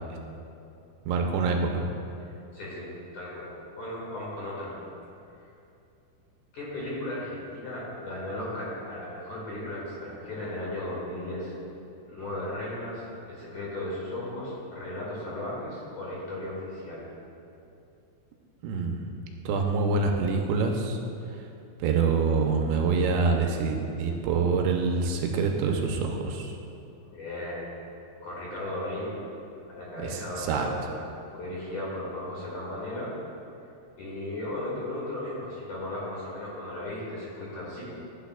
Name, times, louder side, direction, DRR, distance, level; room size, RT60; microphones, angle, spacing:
voice 1, 1.1-1.8 18.6-19.1 19.5-21.0 21.8-26.5 30.0-30.7, right 4 dB, 85° right, 2 dB, 2.9 m, -26 dB
voice 2, 2.2-4.7 6.5-11.5 12.1-17.1 27.0-27.7 28.2-29.2 29.7-31.0 31.3-33.1 34.0-37.8, left 1 dB, 50° left, -7 dB, 3.0 m, -36 dB
14.5 x 8.5 x 2.3 m, 2.7 s
omnidirectional pair, 5.2 m